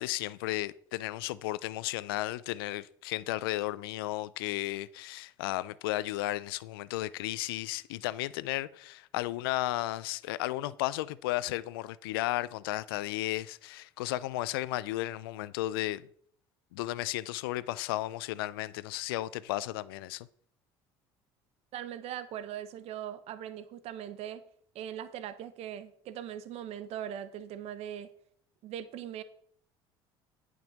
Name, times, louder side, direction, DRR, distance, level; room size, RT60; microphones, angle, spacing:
voice 1, 0.0-16.0 16.7-20.3, left 16 dB, 85° left, 0.4 m, -34 dB
voice 2, 21.7-24.4 24.7-28.1 28.6-29.2, right 10 dB, 60° right, 0.9 m, -40 dB
9.2 x 5.4 x 6.4 m
hypercardioid pair, 75°, 12 cm